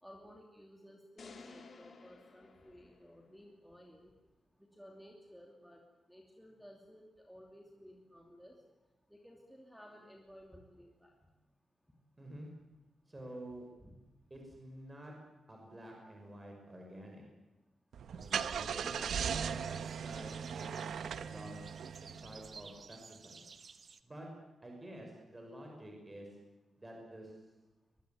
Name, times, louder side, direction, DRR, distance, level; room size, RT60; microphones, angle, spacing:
voice 1, 0.0-4.1 4.7-5.8 6.1-8.6 9.1-11.1 13.8-14.0, equal, ahead, 1 dB, 2.8 m, -56 dB
sound 1, 1.2-3.5, left 4 dB, 45° left, 3.0 m, -55 dB
voice 2, 12.2-12.5 13.1-13.7 14.3-15.1 15.5-17.2 18.1-21.6 22.2-23.4 24.0-24.3 24.6-26.3 26.8-27.3, right 1 dB, 15° right, 1 dB, 5.7 m, -49 dB
Car / Engine starting, 17.9-22.6, right 7 dB, 80° right, 1.1 m, -38 dB
sound 2, 18.2-24.0, right 5 dB, 40° right, 1.3 m, -55 dB
24.0 x 21.5 x 9.2 m, 1.0 s
wide cardioid pair, 170°, 0 cm